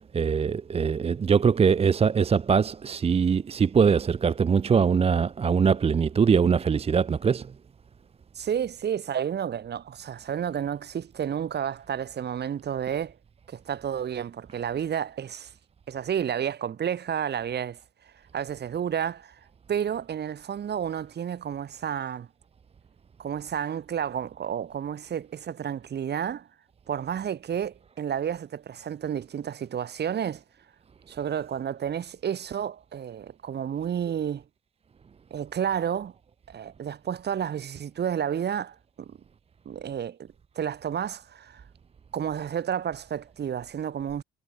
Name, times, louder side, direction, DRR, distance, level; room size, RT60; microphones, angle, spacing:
voice 1, 0.0-7.5, right 6 dB, 30° right, 0.6 m, -22 dB
voice 2, 8.3-13.1 13.5-15.5 15.9-17.8 18.3-19.4 19.7-22.3 23.2-26.5 26.9-30.4 31.1-34.4 35.3-36.1 36.5-39.2 39.6-41.6 42.1-44.2, right 8 dB, 55° right, 3.4 m, -31 dB
cardioid pair, 90°, 20 cm